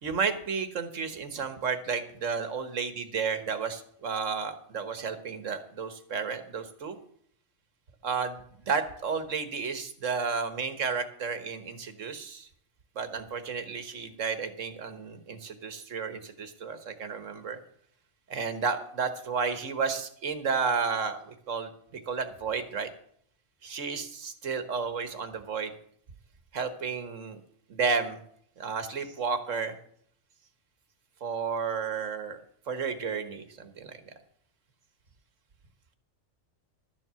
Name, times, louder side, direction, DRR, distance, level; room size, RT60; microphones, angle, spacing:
voice 1, 0.0-7.0 8.0-12.5 12.9-17.6 18.3-22.9 23.6-25.7 26.5-27.4 27.7-28.2 28.6-29.8 31.2-32.4 32.7-34.0, right 5 dB, 85° right, 9 dB, 1.7 m, -32 dB
12.5 x 7.6 x 6.9 m, 0.64 s
omnidirectional pair, 1.3 m